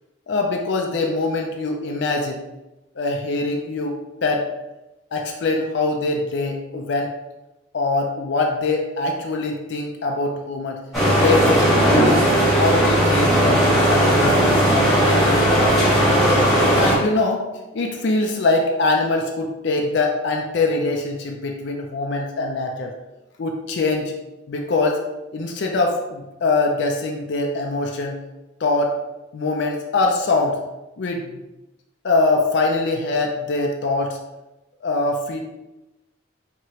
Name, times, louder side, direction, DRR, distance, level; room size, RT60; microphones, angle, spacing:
voice 1, 0.3-2.4 3.0-4.5 5.1-7.1 7.7-10.8 11.2-12.2 12.6-16.1 16.7-17.4 17.7-22.9 23.4-24.1 24.5-25.0 25.3-28.2 28.6-29.0 29.3-30.6 31.0-31.4 32.0-34.2 34.8-35.4, left 3 dB, 65° left, 1 dB, 0.4 m, -23 dB
sound 1, 10.9-17.0, equal, ahead, 1.3 m, -17 dB
4.6 x 2.9 x 2.9 m, 1.0 s
head